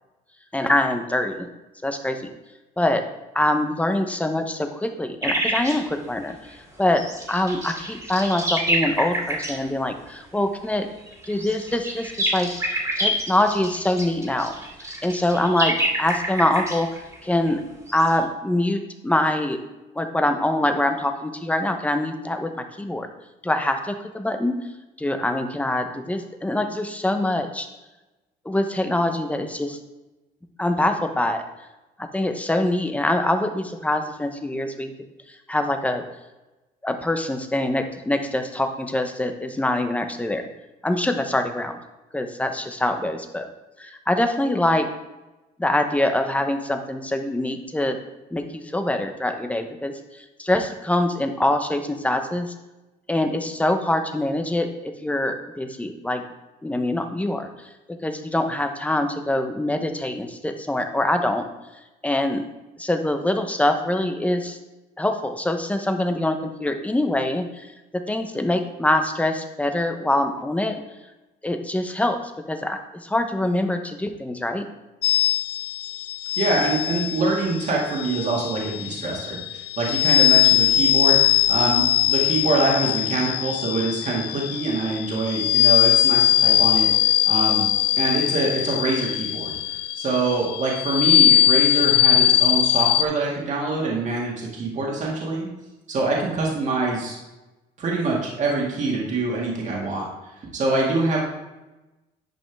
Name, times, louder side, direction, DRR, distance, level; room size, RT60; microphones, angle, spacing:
voice 1, 0.5-1.5 1.8-2.3 2.8-3.0 3.3-7.0 7.3-10.9 11.3-12.5 13.0-14.5 15.0-17.6 17.9-19.6 19.9-23.1 23.4-24.6 25.0-27.7 28.4-29.8 30.6-31.4 32.0-34.9 35.3-36.0 36.8-40.5 40.8-41.8 42.1-43.5 43.8-44.9 45.6-48.0 48.3-52.5 53.1-56.2 56.6-57.5 57.9-61.4 62.0-62.4 62.8-64.6 65.0-70.8 71.4-74.7, left 1 dB, 10° left, 6 dB, 0.8 m, -24 dB
sound 1, 5.2-5.8 6.9-9.5 11.1-17.5 17.9-18.1, right 1 dB, 15° right, 2.3 m, -26 dB
sound 2, 75.0-93.0, left 13 dB, 75° left, 0.4 m, -20 dB
voice 2, 76.4-87.7 88.0-95.5 95.9-97.2 97.8-100.1 100.3-101.2, right 3 dB, 45° right, -3 dB, 2.0 m, -25 dB
10.5 x 5.2 x 3.4 m, 1.1 s
cardioid pair, 110°, 17 cm